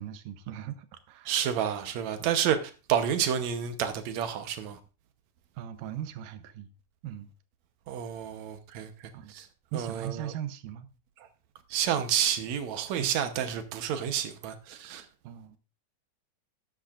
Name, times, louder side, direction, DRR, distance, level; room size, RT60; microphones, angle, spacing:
voice 1, 0.0-1.3 5.6-6.7 7.0-7.3 9.1-9.3 9.7-10.9 13.0-13.1 15.2-15.6, right 11 dB, 90° right, 2.5 m, -39 dB
voice 2, 1.3-4.8 7.9-9.5 9.7-10.3 11.7-15.1, right 9 dB, 70° right, 2.0 m, -30 dB
13.0 x 10.5 x 2.5 m
omnidirectional pair, 3.7 m